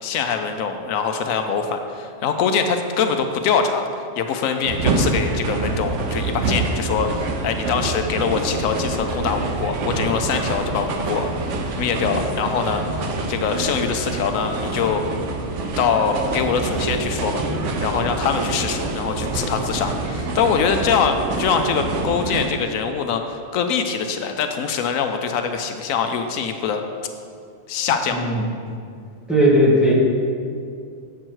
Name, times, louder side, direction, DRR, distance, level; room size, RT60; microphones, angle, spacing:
voice 1, 0.0-3.9 4.2-11.3 11.8-15.0 15.8-17.4 17.8-26.8 27.7-28.2, left 6 dB, 85° left, 6 dB, 1.0 m, -23 dB
sound 1, 4.7-22.5, right 3 dB, 70° right, 1.1 m, -26 dB
voice 2, 29.3-29.9, equal, ahead, -7 dB, 1.9 m, -16 dB
7.6 x 7.3 x 4.5 m, 2.3 s
omnidirectional pair, 1.4 m